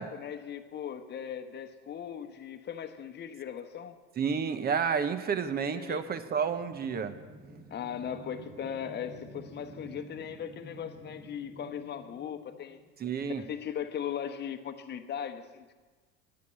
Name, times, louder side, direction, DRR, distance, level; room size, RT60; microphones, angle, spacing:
voice 1, 0.0-4.0 5.7-6.0 7.7-12.8 13.4-15.7, left 8 dB, 35° left, 7 dB, 1.1 m, -38 dB
voice 2, 4.2-7.1 13.0-13.4, right 6 dB, 30° right, 11 dB, 0.9 m, -30 dB
sound 1, 6.3-13.3, right 1 dB, 15° right, 1.9 m, -51 dB
9.8 x 9.3 x 8.1 m, 1.4 s
supercardioid pair, 105°, 31 cm